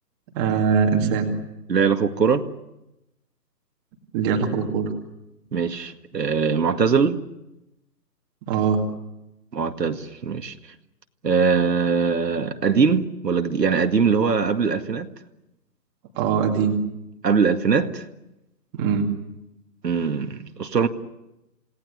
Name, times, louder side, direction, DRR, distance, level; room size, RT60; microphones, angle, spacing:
voice 1, 0.3-1.3 4.1-4.9 8.5-8.8 16.2-16.8 18.7-19.1, right 6 dB, 15° right, 2.2 m, -22 dB
voice 2, 1.7-2.5 5.5-7.2 9.5-10.5 11.2-15.1 17.2-18.1 19.8-20.9, right 5 dB, 85° right, 2.1 m, -21 dB
27.5 x 18.0 x 9.9 m
hypercardioid pair, 165°, 49 cm